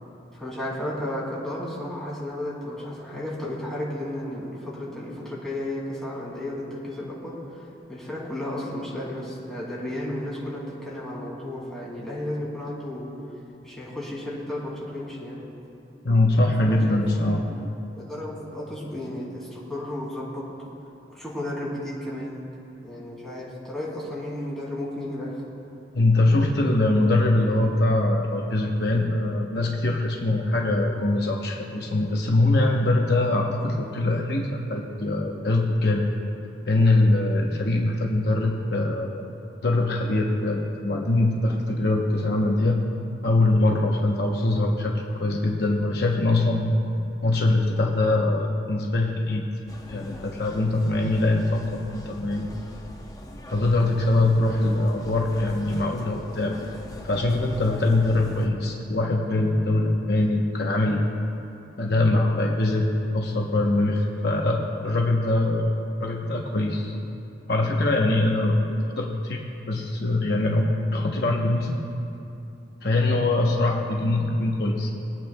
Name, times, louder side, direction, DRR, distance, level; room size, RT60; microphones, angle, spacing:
voice 1, 0.3-13.1 13.6-15.5 16.6-20.5 21.1-22.4 22.8-25.4, left 1 dB, 5° left, -7 dB, 2.5 m, -33 dB
voice 2, 16.0-17.4 25.9-36.0 36.7-39.2 39.6-42.8 43.2-46.6 47.2-49.4 49.9-52.5 53.5-56.6 57.0-61.0 61.8-65.7 66.0-66.9 67.5-71.7 72.8-75.0, left 2 dB, 55° left, 0 dB, 0.9 m, -23 dB
sound 1, 49.7-58.5, left 1 dB, 20° left, 0.6 m, -42 dB
24.0 x 9.1 x 2.2 m, 2.8 s
head